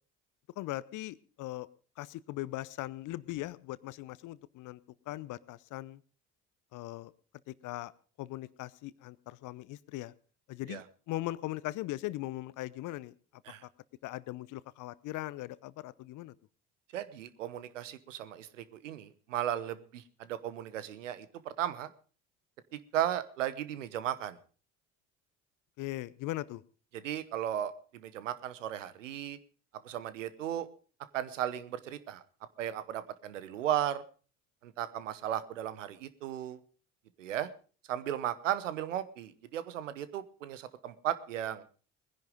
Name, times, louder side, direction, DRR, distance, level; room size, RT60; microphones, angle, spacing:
voice 1, 0.6-1.7 2.0-4.8 5.1-6.0 6.7-7.1 7.5-7.9 8.2-10.1 10.5-13.1 14.0-16.3 25.8-26.6, left 17 dB, 55° left, 19 dB, 0.8 m, -39 dB
voice 2, 16.9-21.9 22.9-24.4 26.9-29.4 29.8-30.7 31.1-32.2 32.6-34.0 34.6-36.6 37.2-37.5 37.9-41.6, right 11 dB, 80° right, 15 dB, 1.0 m, -35 dB
20.0 x 10.5 x 5.2 m, 0.38 s
hypercardioid pair, 55°, 37 cm